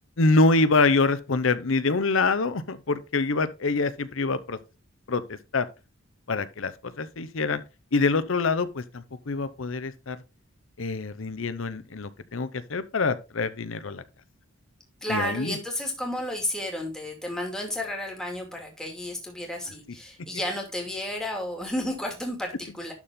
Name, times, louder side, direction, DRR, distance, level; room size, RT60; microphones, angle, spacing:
voice 1, 0.2-4.6 5.1-5.7 6.3-6.7 7.0-7.6 7.9-10.2 10.8-14.0 15.1-15.6, left 3 dB, 70° left, 0.8 m, -25 dB
voice 2, 15.0-22.9, left 1 dB, 5° left, 2.5 m, -32 dB
11.5 x 4.3 x 3.6 m
head